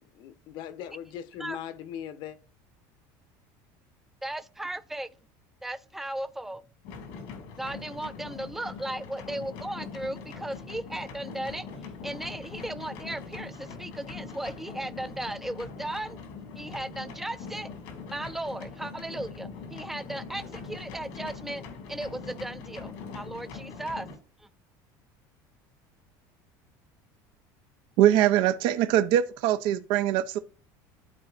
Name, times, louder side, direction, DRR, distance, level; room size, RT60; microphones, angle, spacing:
voice 1, 0.0-2.4, left 10 dB, 60° left, 0.9 m, -40 dB
voice 2, 4.2-5.1 5.6-6.6 7.6-16.2 16.5-17.7 18.1-21.6 21.9-24.1 24.4-24.5, right 1 dB, 5° right, 0.5 m, -36 dB
sound 1, 6.8-24.2, left 5 dB, 80° left, 2.0 m, -42 dB
voice 3, 28.0-30.4, right 12 dB, 65° right, 0.5 m, -22 dB
12.5 x 4.2 x 2.4 m
cardioid pair, 130°, 9 cm